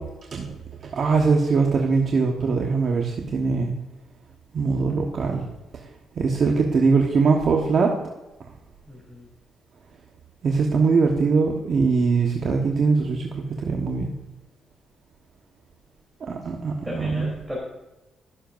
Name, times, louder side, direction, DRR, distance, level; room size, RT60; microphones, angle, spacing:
voice 1, 0.9-3.7 4.5-5.4 6.2-7.9 10.4-14.1 16.3-17.3, right 4 dB, 55° right, 0 dB, 1.3 m, -21 dB
voice 2, 8.9-9.2 16.8-17.6, left 1 dB, 5° right, -5 dB, 3.5 m, -35 dB
16.0 x 6.9 x 2.6 m, 1.0 s
cardioid pair, 90°, 0 cm